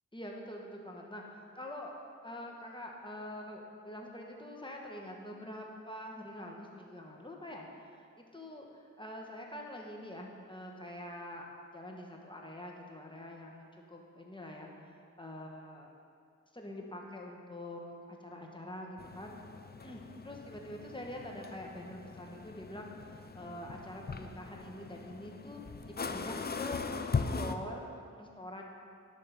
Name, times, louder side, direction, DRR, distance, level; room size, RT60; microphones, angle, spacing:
voice 1, 0.1-1.9 2.2-11.4 11.7-15.9 16.5-19.3 19.8-25.6 26.0-26.8 27.2-28.6, left 1 dB, 15° left, 0 dB, 1.2 m, -45 dB
sound 1, 19.0-27.6, left 5 dB, 35° left, 0.4 m, -40 dB
10.5 x 3.7 x 5.7 m, 2.4 s
cardioid pair, 45°, 30 cm